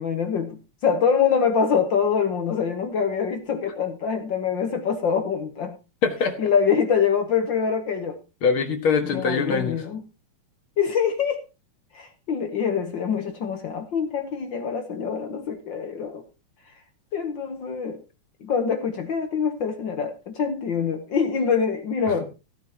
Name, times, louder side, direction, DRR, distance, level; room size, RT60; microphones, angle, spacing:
voice 1, 0.0-5.7 6.4-8.2 9.0-10.0 10.8-11.4 11.9-16.2 17.1-18.0 18.4-22.2, left 6 dB, 65° left, 7 dB, 1.2 m, -24 dB
voice 2, 6.0-6.5 8.4-9.9 22.1-22.2, left 5 dB, 50° left, 6 dB, 2.1 m, -23 dB
16.5 x 10.0 x 2.9 m, 0.28 s
omnidirectional pair, 3.6 m